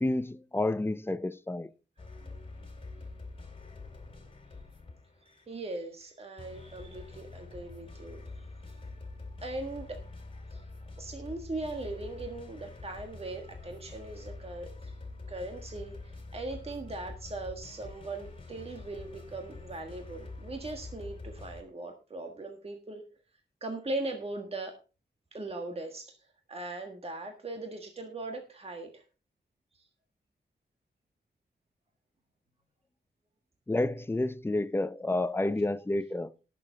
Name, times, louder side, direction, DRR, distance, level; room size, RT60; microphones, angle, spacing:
voice 1, 0.0-1.7 33.7-36.3, left 2 dB, 15° left, 0.5 m, -30 dB
sound 1, 2.0-5.5 6.0-21.6, left 3 dB, 30° left, 2.7 m, -46 dB
voice 2, 5.2-8.5 9.4-10.0 10.5-10.6 11.0-15.0 15.3-23.0 23.6-24.8 25.3-26.2 26.5-29.0 29.7-29.9, right 2 dB, 35° right, 1.6 m, -39 dB
18.5 x 6.9 x 3.9 m
wide cardioid pair, 155°, 18 cm